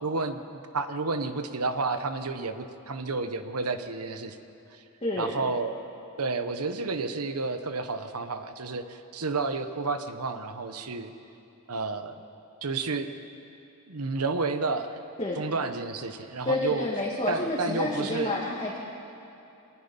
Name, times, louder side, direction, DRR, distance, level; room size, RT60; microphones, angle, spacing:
voice 1, 0.0-4.4 4.7-4.8 5.1-5.7 6.2-11.1 11.7-12.2 12.6-13.1 13.9-15.0 15.4-16.9 17.3-18.4, right 3 dB, 85° right, 9 dB, 1.2 m, -31 dB
voice 2, 5.0-5.3 15.2-15.4 16.4-18.8, left 2 dB, 25° left, -5 dB, 2.0 m, -29 dB
25.0 x 19.5 x 5.5 m, 2.8 s
head